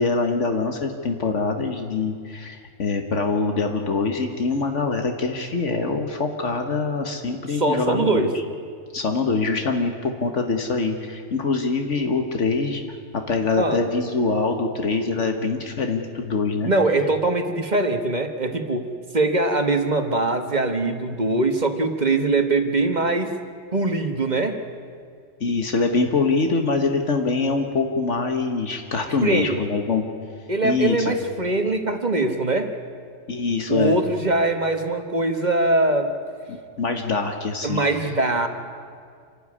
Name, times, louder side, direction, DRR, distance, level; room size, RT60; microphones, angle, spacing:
voice 1, 0.0-8.3 8.9-12.8 13.1-16.7 25.4-30.1 30.6-31.1 33.3-34.0 36.5-37.8, left 4 dB, 75° left, 5 dB, 1.7 m, -24 dB
voice 2, 7.5-8.3 13.6-13.8 16.6-18.9 19.1-23.3 23.7-24.6 29.2-29.7 30.5-32.7 33.7-36.1 37.6-38.5, right 2 dB, 35° right, 6 dB, 1.4 m, -22 dB
27.5 x 12.5 x 9.8 m, 2.2 s
omnidirectional pair, 1.3 m